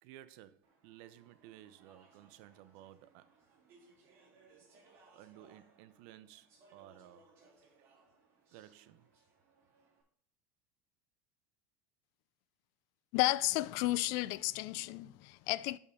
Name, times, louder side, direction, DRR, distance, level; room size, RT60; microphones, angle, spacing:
voice 1, 0.0-3.3 5.1-7.5 8.5-9.1, right 13 dB, 60° right, 0.6 m, -56 dB
Speech / Chatter, 0.6-10.0, right 3 dB, 45° right, 2.9 m, -66 dB
voice 2, 13.1-15.8, left 18 dB, 60° left, 0.3 m, -32 dB
6.9 x 5.5 x 4.8 m
supercardioid pair, 145°, 6 cm